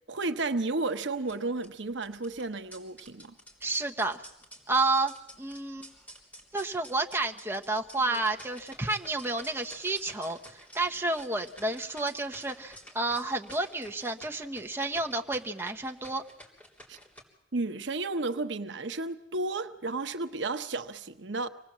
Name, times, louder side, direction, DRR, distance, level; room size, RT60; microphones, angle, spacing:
voice 1, 0.1-3.3 16.9-17.0 17.5-21.5, right 3 dB, 70° right, 1.0 m, -32 dB
sound 1, 1.2-17.2, equal, 10° left, 3.7 m, -52 dB
voice 2, 3.6-4.2 4.7-5.9 6.5-16.2, right 2 dB, 15° right, 1.1 m, -30 dB
25.5 x 19.0 x 7.5 m
head